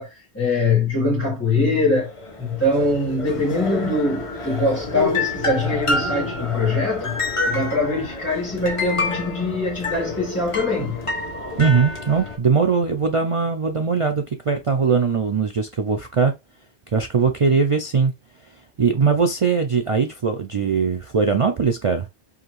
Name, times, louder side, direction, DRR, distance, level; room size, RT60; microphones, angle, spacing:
voice 1, 0.0-2.1 2.4-7.2 7.4-11.0, left 2 dB, 15° left, 1.4 m, -22 dB
sound 1, 1.9-12.4, left 3 dB, 30° left, 1.1 m, -28 dB
voice 2, 11.6-16.3 16.9-18.1 18.8-22.1, right 5 dB, 60° right, 0.3 m, -20 dB
4.9 x 2.8 x 3.0 m
omnidirectional pair, 1.2 m